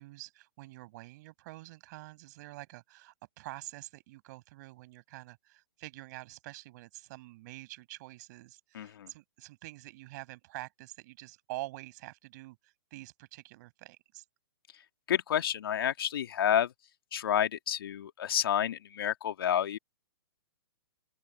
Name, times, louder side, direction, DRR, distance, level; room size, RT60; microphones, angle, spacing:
voice 1, 0.0-14.2, right 20 dB, 45° right, 6.1 m, -47 dB
voice 2, 8.7-9.1 15.1-16.7 17.1-19.8, left 10 dB, 65° left, 2.3 m, -29 dB
open air
hypercardioid pair, 125°, 13 cm